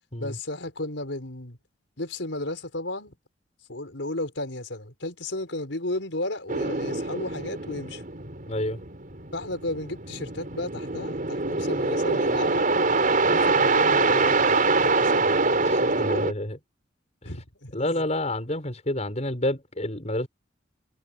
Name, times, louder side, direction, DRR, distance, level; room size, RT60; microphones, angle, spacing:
voice 1, 0.2-1.6 2.0-3.1 3.7-8.0 9.3-12.7 13.2-16.2 17.2-17.9, left 2 dB, 85° left, 4.9 m, -34 dB
sound 1, 6.5-16.3, right 3 dB, 50° right, 4.9 m, -24 dB
voice 2, 8.5-8.8 15.6-16.6 17.7-20.3, left 1 dB, 40° left, 6.7 m, -29 dB
head